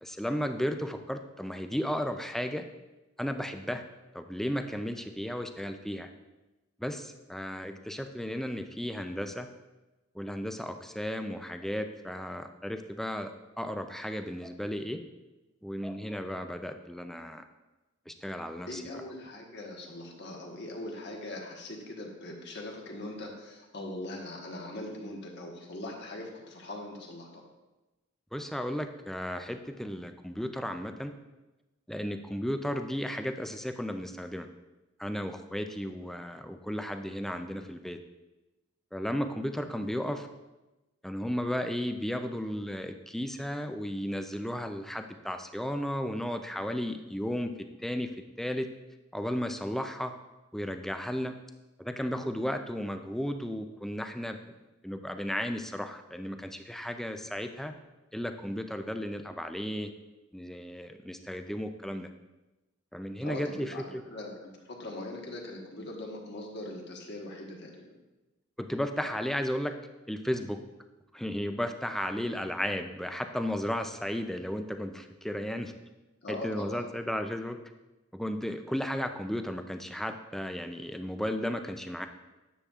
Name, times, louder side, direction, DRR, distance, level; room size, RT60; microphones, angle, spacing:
voice 1, 0.0-2.6 3.2-3.8 4.1-6.1 6.8-9.5 10.2-13.3 13.6-15.0 15.6-17.4 18.1-18.8 28.3-31.1 31.9-34.5 35.0-38.0 38.9-40.3 41.0-47.5 47.8-48.1 48.4-48.7 49.1-50.1 50.5-51.3 51.8-54.4 54.8-57.7 58.1-59.9 60.3-62.1 62.9-63.7 68.6-69.7 70.1-70.6 71.1-75.7 76.3-77.6 78.1-82.1, equal, ahead, 7 dB, 0.4 m, -34 dB
voice 2, 18.7-27.4 63.2-67.9 76.2-76.8, left 1 dB, 55° left, 0 dB, 1.3 m, -41 dB
10.0 x 7.0 x 2.4 m, 1.1 s
head